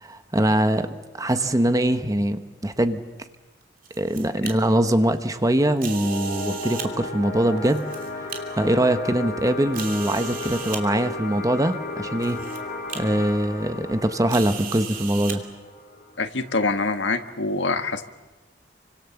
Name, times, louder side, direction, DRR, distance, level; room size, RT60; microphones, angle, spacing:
voice 1, 0.0-3.0 4.0-7.9 8.2-8.3 8.6-12.4 12.9-15.4, right 1 dB, 20° right, 9 dB, 1.1 m, -23 dB
sound 1, 3.6-4.5 5.8-6.9 7.6-8.4 9.0-9.1 9.7-10.8 11.7-11.8 12.2-12.6 12.9-13.0 14.3-15.4, right 8 dB, 50° right, 2.9 m, -36 dB
sound 2, 5.9-16.9, left 2 dB, 55° left, 4.5 m, -34 dB
voice 2, 16.2-18.0, left 3 dB, 85° left, 8 dB, 1.6 m, -25 dB
29.5 x 25.0 x 7.1 m, 1.1 s
head